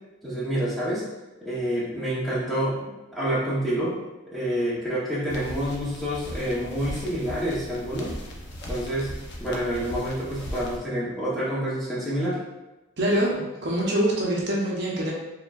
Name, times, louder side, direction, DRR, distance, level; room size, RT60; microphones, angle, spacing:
voice 1, 0.2-1.0 1.4-2.8 3.1-4.0 4.3-8.1 8.7-12.4, equal, ahead, -9 dB, 0.9 m, -28 dB
sound 1, 5.3-10.8, equal, 55° left, 0.7 m, -38 dB
voice 2, 13.0-15.1, right 1 dB, 55° right, -4 dB, 0.8 m, -24 dB
4.3 x 3.5 x 2.4 m, 1.0 s
head